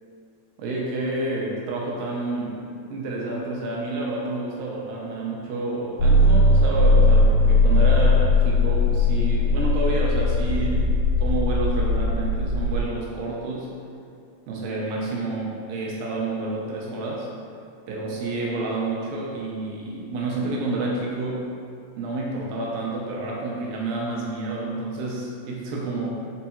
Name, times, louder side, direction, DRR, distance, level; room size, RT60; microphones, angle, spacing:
voice 1, 0.6-10.9 11.2-13.7 14.5-17.3 17.9-21.5 22.0-26.1, right 2 dB, 80° right, -3 dB, 2.2 m, -29 dB
sound 1, 6.0-12.8, left 2 dB, 80° left, 1.8 m, -19 dB
5.1 x 4.1 x 2.3 m, 2.5 s
omnidirectional pair, 4.3 m